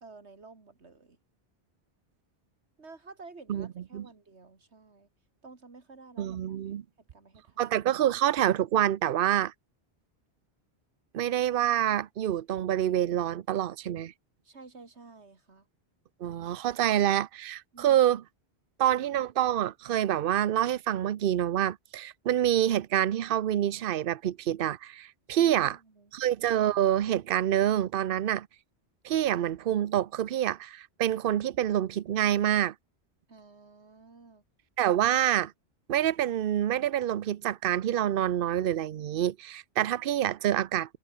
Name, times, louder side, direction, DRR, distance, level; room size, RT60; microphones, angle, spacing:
voice 1, 0.0-1.2 2.8-5.1 5.4-6.6 7.0-7.7 14.4-15.7 17.7-18.1 25.3-26.1 33.3-34.4, right 3 dB, 80° right, 2.8 m, -52 dB
voice 2, 6.2-6.8 7.6-9.5 11.1-14.1 16.2-18.2 18.8-25.8 26.1-28.5 29.0-32.7 34.8-35.5 35.9-41.0, right 11 dB, 60° right, 0.8 m, -27 dB
omnidirectional pair, 1.1 m